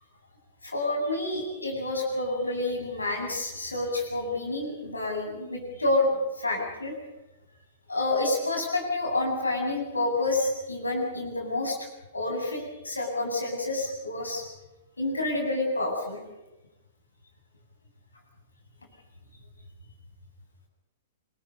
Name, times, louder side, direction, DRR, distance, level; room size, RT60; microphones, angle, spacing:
voice 1, 0.6-6.9 7.9-11.8 12.1-14.4 15.0-16.2, left 2 dB, 85° left, 1 dB, 7.9 m, -28 dB
28.0 x 22.5 x 5.4 m, 1.0 s
figure-of-eight pair, 110°, 0 cm